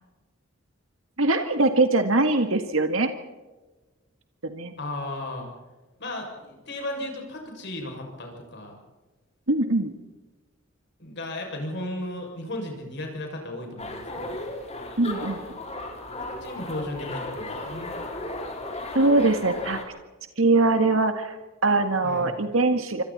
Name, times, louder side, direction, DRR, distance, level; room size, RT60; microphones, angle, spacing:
voice 1, 1.2-3.1 4.4-4.7 9.5-9.9 15.0-15.5 18.9-19.8 20.4-21.4 21.6-23.0, right 2 dB, 80° right, 7 dB, 1.8 m, -22 dB
voice 2, 4.8-5.5 6.0-8.8 11.0-14.4 16.2-17.9 22.0-22.3, left 1 dB, 55° left, 2 dB, 6.7 m, -35 dB
sound 1, 13.8-19.8, left 2 dB, 30° left, 3.7 m, -35 dB
27.5 x 25.0 x 4.3 m, 1.2 s
head